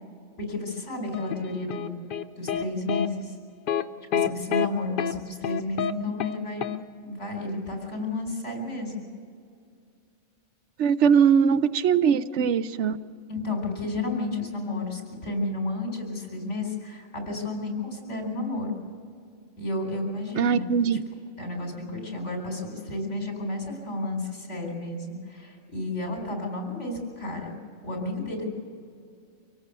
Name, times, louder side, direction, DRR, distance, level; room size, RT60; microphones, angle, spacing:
voice 1, 0.4-2.0 2.4-3.4 4.1-6.7 7.0-8.9 13.3-18.8 19.6-20.7 21.4-27.5 27.8-28.5, left 2 dB, 80° left, 2 dB, 4.5 m, -32 dB
sound 1, 1.1-2.6 2.9-3.1 3.7-3.8 4.1-4.7 5.0-5.1 5.4-5.9 6.2-6.4 6.6-6.8, left 9 dB, 55° left, 0.7 m, -27 dB
voice 2, 10.8-13.0 20.4-21.0, right 7 dB, 75° right, 12 dB, 1.0 m, -21 dB
25.0 x 17.5 x 6.8 m, 2.3 s
omnidirectional pair, 1.2 m